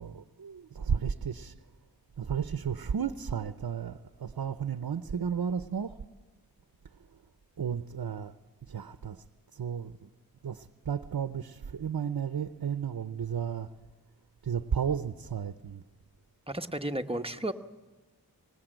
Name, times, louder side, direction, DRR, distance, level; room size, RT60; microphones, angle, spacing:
voice 1, 0.0-1.6 2.2-6.0 6.8-7.2 7.6-8.3 8.6-9.2 9.5-10.1 10.4-13.7 14.4-15.8, right 7 dB, 75° right, 0.8 m, -33 dB
voice 2, 16.5-17.5, right 1 dB, 15° right, 1.1 m, -33 dB
25.0 x 20.0 x 9.0 m
wide cardioid pair, 65°, 36 cm